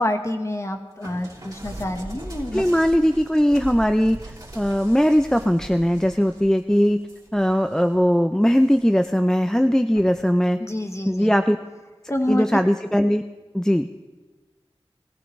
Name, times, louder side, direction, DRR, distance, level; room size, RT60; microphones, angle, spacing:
voice 1, 0.0-2.6 10.6-11.3 12.1-12.6, left 1 dB, 30° left, 5 dB, 1.3 m, -27 dB
sound 1, 1.0-8.0 8.4-9.1 9.9-10.3, right 1 dB, 35° right, 3.1 m, -40 dB
voice 2, 2.5-4.2 4.5-7.0 7.3-10.6 11.1-11.6 12.3-13.2 13.5-13.9, equal, 5° left, 7 dB, 0.4 m, -19 dB
19.5 x 14.0 x 3.2 m, 1.2 s
wide cardioid pair, 40°, 10 cm